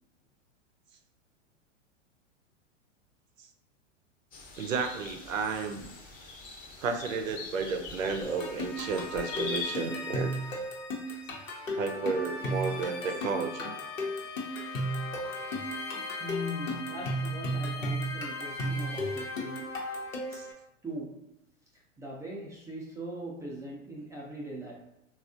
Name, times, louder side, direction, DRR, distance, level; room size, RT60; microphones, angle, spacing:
sound 1, 4.3-9.7, left 3 dB, 20° left, 0.7 m, -43 dB
voice 1, 4.6-5.9 6.8-10.4 11.8-13.8 15.4-15.5 20.3-20.5, right 4 dB, 85° right, 5 dB, 0.6 m, -32 dB
sound 2, 8.2-20.5, equal, 85° left, 1.0 m, -35 dB
Bowed string instrument, 13.3-18.6, left 10 dB, 60° left, 0.5 m, -44 dB
voice 2, 14.9-15.4 15.9-19.7 20.8-21.3 21.7-24.7, equal, 10° right, -3 dB, 0.4 m, -41 dB
3.3 x 2.4 x 2.5 m, 0.85 s
hypercardioid pair, 105°, 38 cm